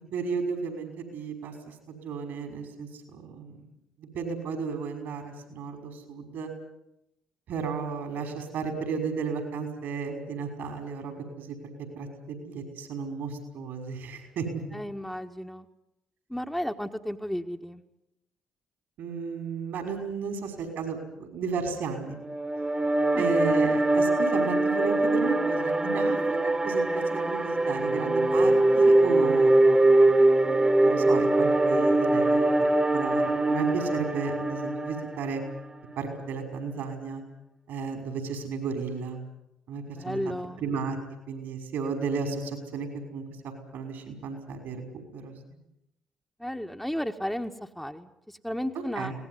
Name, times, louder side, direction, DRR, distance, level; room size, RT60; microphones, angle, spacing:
voice 1, 0.1-3.6 4.0-6.5 7.5-11.6 12.0-14.5 19.0-22.2 23.2-29.9 30.8-32.5 32.9-35.4 36.0-37.2 37.7-39.2 39.7-40.3 40.6-41.0 41.3-43.2 43.7-45.3 49.0-49.1, right 5 dB, 65° right, 5 dB, 5.8 m, -34 dB
voice 2, 14.7-15.7 16.3-17.8 23.1-23.3 39.8-40.6 46.4-49.1, equal, 5° left, 4 dB, 1.7 m, -33 dB
sound 1, 22.2-35.6, right 2 dB, 20° right, 2.0 m, -23 dB
24.0 x 19.0 x 9.7 m, 0.87 s
hypercardioid pair, 45°, 3 cm